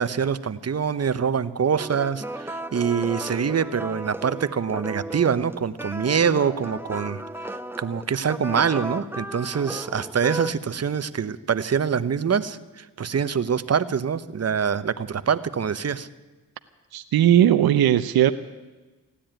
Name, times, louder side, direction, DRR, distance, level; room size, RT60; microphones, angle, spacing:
voice 1, 0.0-16.1, right 7 dB, 40° right, 14 dB, 0.9 m, -25 dB
sound 1, 1.8-10.5, right 1 dB, 5° right, 0.9 m, -35 dB
voice 2, 16.9-18.3, right 11 dB, 75° right, 11 dB, 0.7 m, -18 dB
16.0 x 10.0 x 9.0 m, 1.2 s
supercardioid pair, 45°, 37 cm